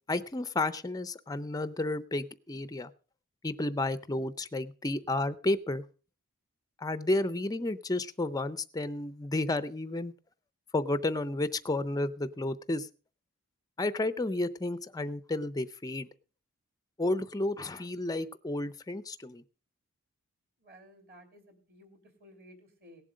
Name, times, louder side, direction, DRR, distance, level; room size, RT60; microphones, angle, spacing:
voice 1, 0.1-2.9 3.4-5.8 6.8-10.1 10.7-12.9 13.8-16.1 17.0-19.4, left 2 dB, 15° left, 13 dB, 0.5 m, -32 dB
voice 2, 20.6-23.0, equal, 45° right, 5 dB, 2.9 m, -56 dB
17.5 x 7.5 x 5.1 m, 0.37 s
head